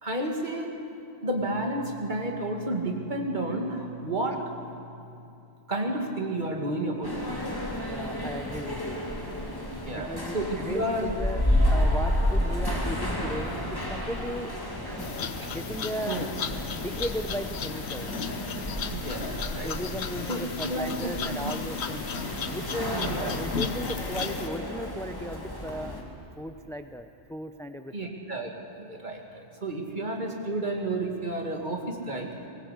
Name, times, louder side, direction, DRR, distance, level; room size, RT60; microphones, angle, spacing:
voice 1, 0.0-0.7 1.2-4.6 5.1-5.2 5.7-7.1 9.7-11.1 15.4-15.5 16.1-16.3 18.9-19.7 20.3-21.5 22.9-23.3 27.9-28.5 28.8-32.3, right 1 dB, 45° right, 1 dB, 2.3 m, -31 dB
sound 1, 7.0-26.0, left 1 dB, 20° left, 2.4 m, -31 dB
voice 2, 7.9-9.0 9.9-14.5 14.8-15.1 15.5-16.2 16.7-18.1 19.6-22.1 22.5-26.0 26.4-28.1, equal, 5° left, 8 dB, 0.4 m, -36 dB
sound 2, 15.0-24.5, left 6 dB, 70° left, 1.1 m, -35 dB
20.0 x 18.5 x 8.2 m, 2.6 s
omnidirectional pair, 1.2 m